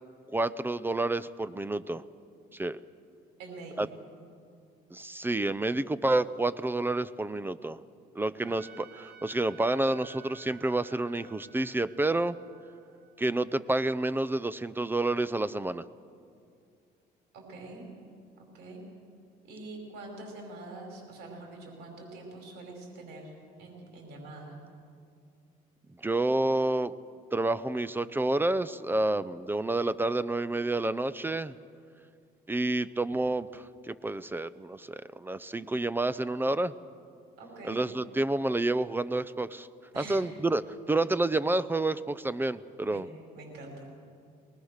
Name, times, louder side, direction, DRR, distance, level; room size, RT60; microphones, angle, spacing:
voice 1, 0.3-2.0 2.5-2.8 3.8-3.9 4.9-7.8 8.2-12.4 13.2-15.8 26.0-26.9 27.3-31.5 32.5-36.7 37.7-39.7 40.0-40.6 40.9-43.1, right 2 dB, 10° right, 16 dB, 0.5 m, -29 dB
voice 2, 3.4-3.8 8.3-8.4 17.3-17.9 18.4-18.9 19.4-24.5 37.4-37.9 39.9-40.2 42.9-43.1 43.3-43.9, right 2 dB, 90° right, 1 dB, 5.3 m, -45 dB
Trumpet, 8.4-13.6, right 9 dB, 70° right, 3.2 m, -54 dB
23.5 x 20.0 x 6.6 m, 2.3 s
cardioid pair, 110°, 17 cm